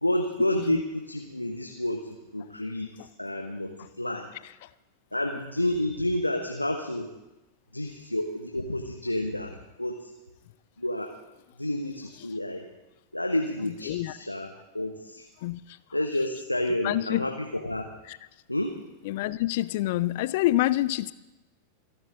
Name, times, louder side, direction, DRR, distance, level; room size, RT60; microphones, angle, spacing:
voice 1, 0.0-2.9 3.2-3.7 4.0-4.3 5.1-7.1 7.7-10.1 10.8-11.1 11.6-12.7 13.1-15.2 15.9-17.8 18.5-18.7, left 1 dB, 85° left, 3 dB, 1.2 m, -29 dB
voice 2, 13.8-14.2 15.4-15.8 16.8-17.3 18.1-18.2 19.0-21.1, left 16 dB, 50° left, 17 dB, 0.5 m, -27 dB
27.5 x 10.5 x 3.9 m, 1.0 s
figure-of-eight pair, 90°, 0 cm